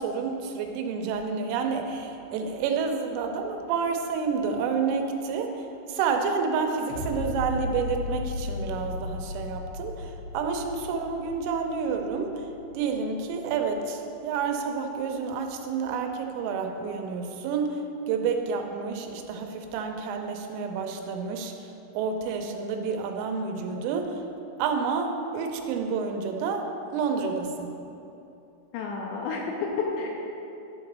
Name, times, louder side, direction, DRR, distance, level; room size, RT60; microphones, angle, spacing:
voice 1, 0.0-12.5 12.7-17.8 18.1-21.7 21.9-24.2 24.6-27.7, right 5 dB, 85° right, 3 dB, 3.2 m, -29 dB
sound 1, 6.9-13.9 14.4-14.5, left 3 dB, 60° left, 2.9 m, -36 dB
voice 2, 28.7-30.2, left 4 dB, 85° left, -1 dB, 2.6 m, -30 dB
11.5 x 4.0 x 6.0 m, 2.9 s
omnidirectional pair, 5.6 m